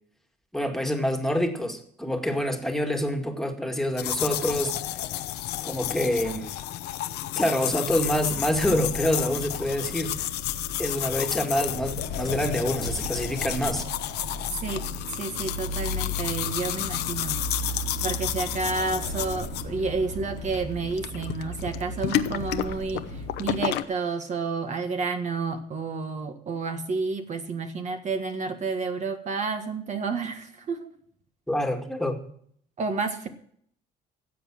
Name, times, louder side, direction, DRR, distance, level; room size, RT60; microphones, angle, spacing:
voice 1, 0.5-4.9 5.6-6.5 7.4-10.2 10.8-13.9 31.5-32.2, equal, ahead, 2.1 m, -27 dB
sound 1, 4.0-23.8, left 13 dB, 80° left, 0.9 m, -32 dB
sound 2, 7.9-23.6, right 1 dB, 90° right, 2.9 m, -37 dB
voice 2, 15.1-17.4 18.0-30.9 32.8-33.3, right 4 dB, 45° right, 1.5 m, -30 dB
16.0 x 7.6 x 6.2 m
cardioid pair, 110°, 17 cm